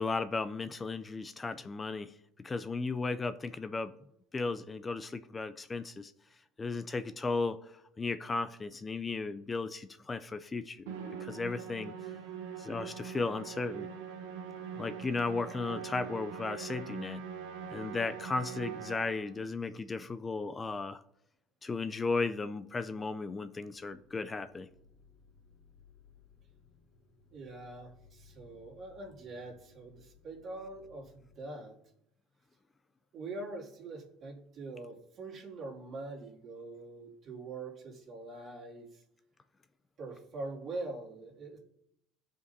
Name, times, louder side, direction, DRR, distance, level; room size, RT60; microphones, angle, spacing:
voice 1, 0.0-2.1 2.4-3.9 4.3-6.1 6.6-7.7 8.0-10.9 11.2-11.9 12.6-13.9 14.8-17.2 17.7-21.0 21.6-24.7, left 3 dB, 20° left, 11 dB, 0.4 m, -35 dB
Musical instrument, 10.9-19.4, right 7 dB, 90° right, 1.1 m, -43 dB
sound 1, 23.7-31.4, left 5 dB, 50° left, 2.2 m, -62 dB
voice 2, 27.3-31.8 33.1-39.0 40.0-41.6, right 2 dB, 50° right, -3 dB, 2.4 m, -43 dB
14.5 x 5.1 x 2.7 m, 0.78 s
supercardioid pair, 105°, 0 cm